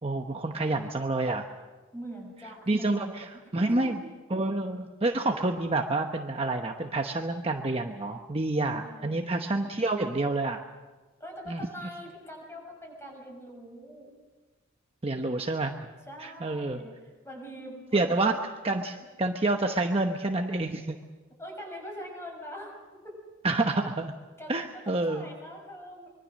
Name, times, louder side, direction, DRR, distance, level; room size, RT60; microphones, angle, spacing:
voice 1, 0.0-1.4 2.7-4.0 4.3-10.6 11.5-11.6 15.0-15.9 16.2-16.8 17.9-18.4 18.6-21.0 23.4-24.1 24.5-25.3, right 2 dB, 25° right, 4 dB, 1.0 m, -28 dB
voice 2, 1.9-3.1 3.3-4.0 8.7-9.3 11.2-14.1 16.1-18.0 21.4-23.2 24.4-26.1, equal, 10° left, 0 dB, 6.8 m, -43 dB
25.0 x 22.5 x 6.4 m, 1.3 s
head